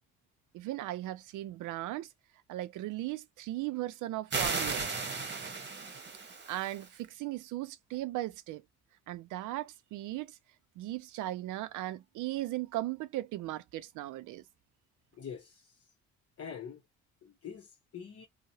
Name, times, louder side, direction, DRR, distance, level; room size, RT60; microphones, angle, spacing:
voice 1, 0.5-2.1 2.5-4.8 6.5-8.6 9.1-10.4 10.8-14.4, right 15 dB, 85° right, 0.5 m, -37 dB
sound 1, 4.3-6.9, right 4 dB, 35° right, 1.0 m, -35 dB
voice 2, 15.1-15.7 16.4-16.8 17.2-18.3, left 7 dB, 50° left, 0.9 m, -45 dB
2.8 x 2.2 x 2.7 m
cardioid pair, 90°, 30 cm